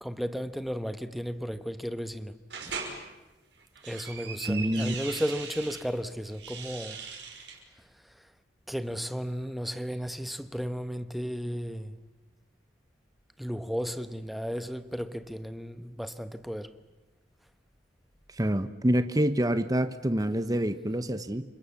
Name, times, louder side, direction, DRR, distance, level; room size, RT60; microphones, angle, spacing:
voice 1, 0.0-2.4 2.7-2.8 3.8-7.1 7.8-8.3 8.7-12.0 13.4-16.8, equal, ahead, 1.1 m, -34 dB
sound 1, 2.5-2.9 3.6-5.8 6.3-7.6, right 5 dB, 80° right, 6.0 m, -39 dB
voice 2, 4.5-4.9 18.4-21.4, right 1 dB, 20° right, 1.0 m, -27 dB
29.5 x 25.5 x 7.2 m
head